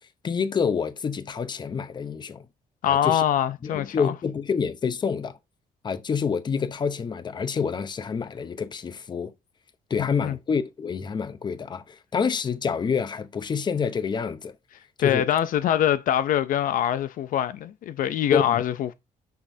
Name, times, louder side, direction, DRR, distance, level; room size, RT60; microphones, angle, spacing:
voice 1, 0.2-2.5 2.9-3.2 3.7-5.4 5.8-9.3 9.9-14.5 15.0-15.3 18.3-18.6, left 6 dB, 30° left, 0.7 m, -27 dB
voice 2, 2.8-4.1 10.0-10.4 15.0-18.9, left 10 dB, 65° left, 0.5 m, -24 dB
9.4 x 6.3 x 2.7 m
cardioid pair, 155°, 15 cm